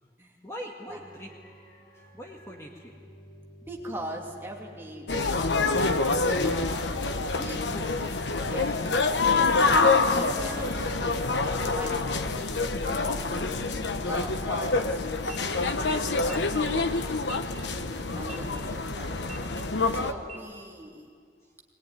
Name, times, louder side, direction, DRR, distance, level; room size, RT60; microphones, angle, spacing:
voice 1, 0.4-2.9 10.0-11.2 11.7-12.1 19.9-20.1 21.4-21.5, equal, 15° left, -1 dB, 1.9 m, -43 dB
sound 1, 0.9-18.7, left 1 dB, 55° left, 6.1 m, -49 dB
voice 2, 3.6-5.7 6.0-7.0 7.3-7.8 8.5-10.6 11.5-12.0 12.2-13.5 14.0-16.5 18.1-19.5 19.9-21.1, right 1 dB, 15° right, -1 dB, 2.6 m, -41 dB
sound 2, 5.1-20.1, left 3 dB, 80° left, 1.2 m, -26 dB
sound 3, 15.3-15.4 16.2-16.4 17.2-17.4 18.2-18.4 19.2-19.4 20.2-20.4, right 4 dB, 45° right, 1.9 m, -44 dB
21.5 x 20.5 x 9.8 m, 2.1 s
head